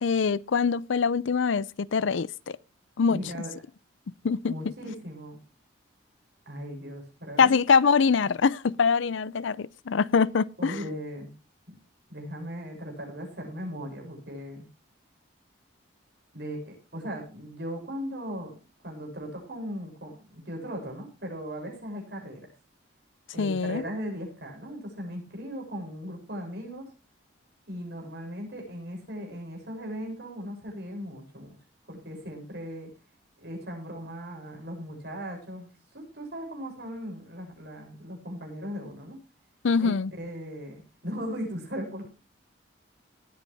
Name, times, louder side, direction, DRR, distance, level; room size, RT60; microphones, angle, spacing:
voice 1, 0.0-2.6 3.0-3.2 4.2-4.5 7.4-10.8 23.4-23.8 39.6-40.1, left 5 dB, 75° left, 0.5 m, -24 dB
voice 2, 3.1-3.5 4.4-5.4 6.5-7.5 10.6-11.3 11.7-11.8 12.1-14.7 16.3-18.5 18.8-22.5 23.3-26.9 27.7-31.5 31.9-32.9 33.4-35.7 35.9-39.2 39.8-40.7 41.0-42.1, equal, 55° right, 7.1 m, -38 dB
18.5 x 9.1 x 3.5 m
head